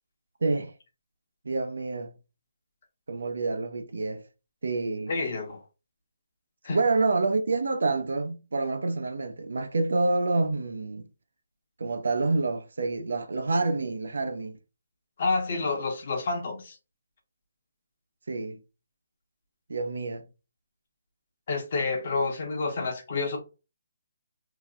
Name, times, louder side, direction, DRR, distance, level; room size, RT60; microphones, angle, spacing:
voice 1, 0.4-0.7 1.4-2.1 3.1-4.2 4.6-5.1 6.7-11.1 11.8-14.6 18.3-18.6 19.7-20.2, right 3 dB, 80° right, 0.6 m, -27 dB
voice 2, 5.1-5.6 6.6-6.8 15.2-16.8 21.5-23.4, left 3 dB, 40° left, 0.9 m, -29 dB
2.8 x 2.0 x 3.6 m
hypercardioid pair, 170°, 0 cm